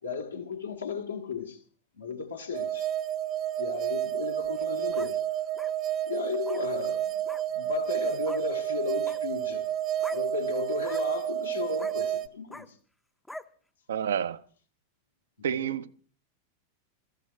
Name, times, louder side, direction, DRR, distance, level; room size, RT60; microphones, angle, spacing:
voice 1, 0.0-1.6 1.9-2.9 3.6-5.2 6.0-7.2 7.5-9.6 10.1-12.8 15.4-15.8, left 5 dB, 75° left, 2.6 m, -35 dB
sound 1, 2.5-12.3, right 11 dB, 35° right, 0.9 m, -30 dB
sound 2, 4.5-5.1 5.6-5.7 6.4-6.6 7.3-7.4 8.3-8.4 8.9-9.2 10.0-10.2 10.8-11.0 11.8-12.0 12.5-12.7 13.3-13.5, left 1 dB, 5° left, 0.8 m, -42 dB
voice 2, 13.9-14.4 15.4-15.9, right 8 dB, 65° right, 0.7 m, -29 dB
22.5 x 14.5 x 4.3 m
figure-of-eight pair, 90°, 0 cm